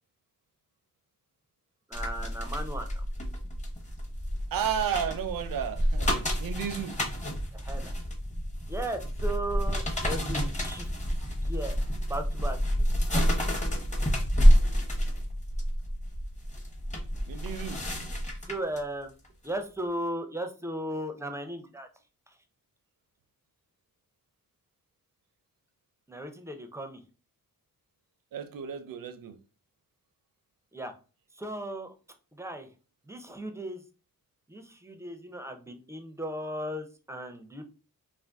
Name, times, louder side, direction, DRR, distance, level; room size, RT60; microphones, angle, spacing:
sound 1, 1.9-18.8 19.2-19.5, equal, 20° left, 0.7 m, -28 dB
voice 1, 1.9-3.0 7.5-7.9 8.7-10.9 11.4-11.8 12.1-12.6 18.5-19.1 19.4-21.9 26.1-27.0 30.7-30.9 31.4-31.9 32.3-32.7 33.1-33.8 34.5-37.6, right 1 dB, 10° right, 0.4 m, -36 dB
voice 2, 4.5-7.0 17.3-17.8 28.3-29.4, right 8 dB, 75° right, 0.5 m, -33 dB
2.5 x 2.4 x 3.4 m
wide cardioid pair, 115°, 34 cm